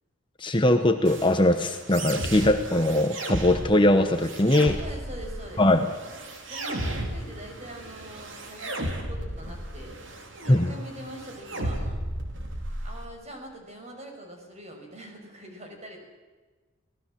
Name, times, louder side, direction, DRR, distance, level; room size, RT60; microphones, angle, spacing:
voice 1, 0.4-4.7 5.6-5.9 10.5-10.7, left 1 dB, 25° left, 6 dB, 1.0 m, -21 dB
sound 1, 1.0-13.0, right 1 dB, 65° right, 3.2 m, -35 dB
voice 2, 4.6-5.7 6.5-10.0 10.4-12.0 12.8-16.0, right 1 dB, 30° right, 2 dB, 5.9 m, -43 dB
26.5 x 18.5 x 7.6 m, 1.3 s
head